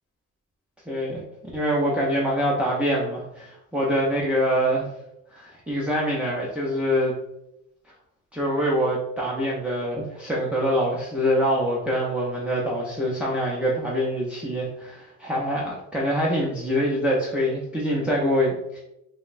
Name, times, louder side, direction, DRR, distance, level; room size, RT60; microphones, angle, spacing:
voice 1, 0.9-1.2 1.5-4.9 5.3-7.1 8.3-18.8, equal, 5° right, -6 dB, 0.5 m, -25 dB
5.1 x 2.1 x 2.4 m, 0.83 s
cardioid pair, 130°, 32 cm